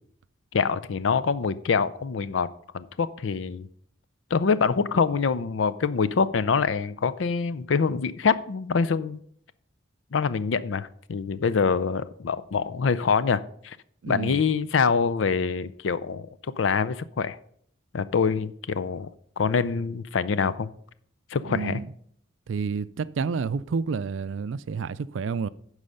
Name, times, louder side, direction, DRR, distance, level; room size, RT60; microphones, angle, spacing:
voice 1, 0.5-2.5 2.7-3.7 4.3-9.2 10.1-13.8 14.1-16.3 16.6-17.4 17.9-19.1 19.4-20.7 21.3-21.8, left 5 dB, 70° left, 0.5 m, -25 dB
voice 2, 14.0-14.4 21.4-21.9 22.5-25.5, right 5 dB, 75° right, 0.4 m, -29 dB
11.5 x 4.8 x 5.5 m
head